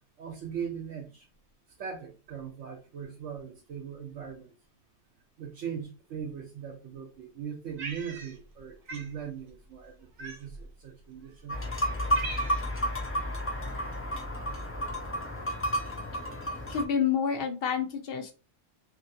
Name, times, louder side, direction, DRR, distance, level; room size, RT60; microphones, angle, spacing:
voice 1, 0.2-1.3 1.8-4.5 5.4-11.6, right 7 dB, 75° right, 2 dB, 1.0 m, -40 dB
Cat, 7.8-8.6 8.9-9.1 10.2-10.7 11.4-11.5 11.8-12.8, right 3 dB, 50° right, 0.8 m, -40 dB
sound 1, 11.5-16.8, equal, 20° left, 0.4 m, -31 dB
voice 2, 16.7-18.3, left 7 dB, 55° left, 5 dB, 0.8 m, -28 dB
2.8 x 2.7 x 2.6 m, 0.31 s
omnidirectional pair, 1.3 m